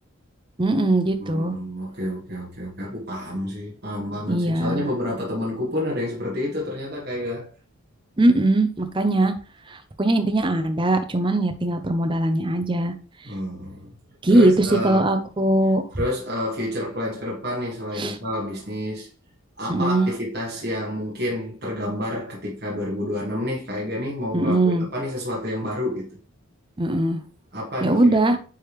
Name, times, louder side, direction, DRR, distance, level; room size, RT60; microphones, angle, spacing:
voice 1, 0.6-1.6 4.3-4.9 8.2-9.3 9.7-12.9 14.2-15.8 18.0-18.2 19.7-20.1 24.3-24.9 26.8-27.2 27.8-28.4, right 1 dB, 20° right, 0.6 m, -20 dB
voice 2, 1.2-7.5 13.2-13.9 14.3-15.1 16.0-19.1 19.6-26.2 27.5-28.2, left 1 dB, 50° right, 1.7 m, -29 dB
9.2 x 3.5 x 3.1 m
head